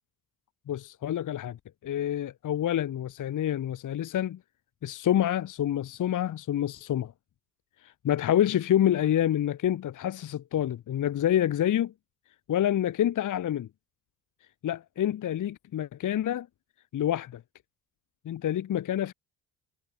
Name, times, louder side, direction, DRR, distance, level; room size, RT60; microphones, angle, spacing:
voice 1, 0.7-1.6 1.8-4.4 4.8-7.1 7.8-11.9 12.5-13.7 14.6-16.5 16.9-17.4 18.2-19.1, left 11 dB, 40° left, 1.1 m, -27 dB
figure-of-eight pair, 50°, 48 cm